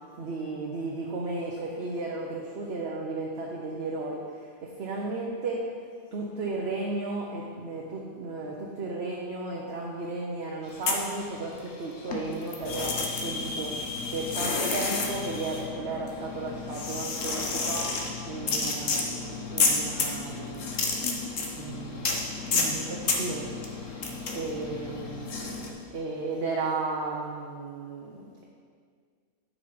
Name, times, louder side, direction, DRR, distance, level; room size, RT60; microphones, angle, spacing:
voice 1, 0.2-5.6 6.1-13.7 14.1-17.9 18.3-20.6 21.6-22.1 22.5-28.4, right 3 dB, 55° right, -2 dB, 1.1 m, -34 dB
sound 1, 10.7-11.8 12.1-25.7, left 4 dB, 70° left, 1.3 m, -31 dB
9.9 x 5.2 x 5.1 m, 2.1 s
omnidirectional pair, 1.4 m